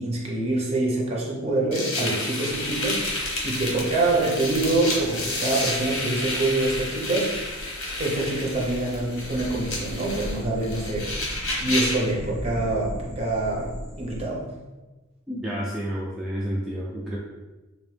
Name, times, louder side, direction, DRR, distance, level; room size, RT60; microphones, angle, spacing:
voice 1, 0.0-7.6 8.0-11.1 11.6-14.5, right 2 dB, 30° right, -2 dB, 0.8 m, -26 dB
sound 1, 1.7-12.1, left 2 dB, 90° left, 1.0 m, -30 dB
sound 2, 2.5-14.2, equal, 20° left, 1.1 m, -39 dB
voice 2, 15.3-17.2, equal, ahead, -6 dB, 0.3 m, -30 dB
3.4 x 2.9 x 3.3 m, 1.2 s
head